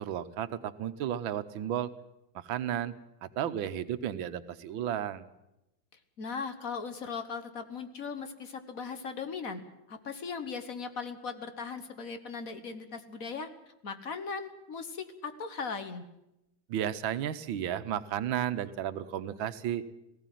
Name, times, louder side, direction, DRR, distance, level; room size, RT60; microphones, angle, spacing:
voice 1, 0.0-1.9 2.3-2.9 3.4-5.3 16.7-19.8, right 10 dB, 85° right, 12 dB, 1.7 m, -33 dB
voice 2, 6.2-9.6 9.9-13.5 13.8-16.0, left 5 dB, 50° left, 9 dB, 1.6 m, -38 dB
18.5 x 16.0 x 9.2 m, 0.89 s
omnidirectional pair, 2.1 m